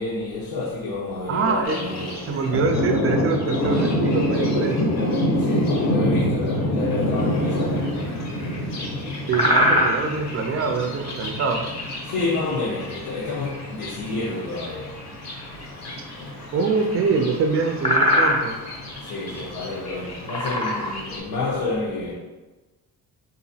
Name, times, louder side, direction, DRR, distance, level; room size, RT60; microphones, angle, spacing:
voice 1, 0.0-2.2 5.4-7.9 12.1-14.9 19.0-22.1, left 3 dB, 90° left, 0.9 m, -29 dB
voice 2, 1.3-1.8 2.2-4.8 9.1-11.6 16.5-18.6, right 4 dB, 40° right, 0.4 m, -24 dB
Thunder, 1.6-21.2, left 1 dB, 50° left, 0.7 m, -27 dB
sound 1, 9.2-10.2 13.2-13.3 16.7-16.8 17.3-17.4 17.8-18.6 19.3-19.4 20.0-21.0, left 1 dB, 15° left, 0.5 m, -21 dB
3.9 x 2.8 x 2.7 m
cardioid pair, 140°, 36 cm